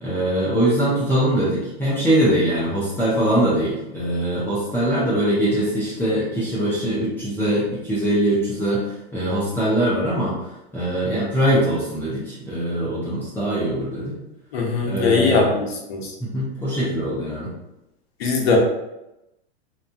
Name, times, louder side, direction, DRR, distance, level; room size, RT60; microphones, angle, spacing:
voice 1, 0.0-8.9 9.1-10.4 10.7-14.2 14.8-15.5 16.2-17.5, right 1 dB, 5° left, -10 dB, 0.6 m, -22 dB
voice 2, 14.5-15.6 15.9-16.1 18.2-18.6, left 4 dB, 65° left, 0 dB, 0.9 m, -20 dB
3.0 x 2.2 x 2.5 m, 0.92 s
hypercardioid pair, 130°, 33 cm